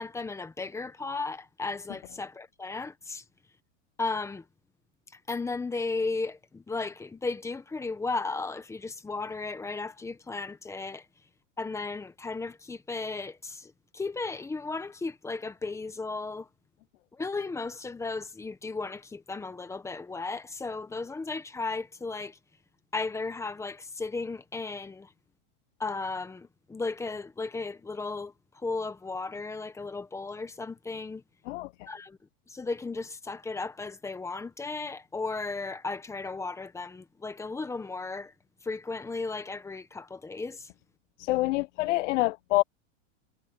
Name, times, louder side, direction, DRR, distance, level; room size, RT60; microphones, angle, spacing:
voice 1, 0.0-3.2 4.0-4.5 5.1-11.0 11.6-16.5 17.1-22.4 22.9-25.1 25.8-31.2 31.9-32.2 32.5-38.3 38.6-40.7, left 3 dB, 10° left, 1.3 m, -35 dB
voice 2, 41.2-42.6, left 19 dB, 85° left, 0.6 m, -26 dB
supercardioid pair, 155°, 36 cm